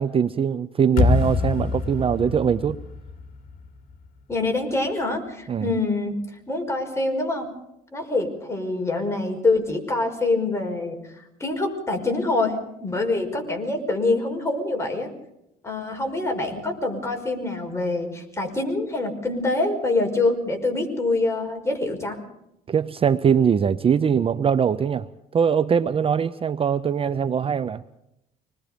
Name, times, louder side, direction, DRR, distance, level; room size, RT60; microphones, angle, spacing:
voice 1, 0.0-2.8 5.5-5.7 22.7-27.8, right 7 dB, 35° right, 14 dB, 0.7 m, -22 dB
sound 1, 1.0-4.1, left 4 dB, 60° left, 2.8 m, -25 dB
voice 2, 4.3-6.2 6.5-7.5 7.9-11.0 11.4-15.1 15.6-22.2, left 2 dB, 15° left, 2 dB, 5.6 m, -25 dB
25.5 x 20.5 x 5.2 m, 0.83 s
cardioid pair, 110°, 17 cm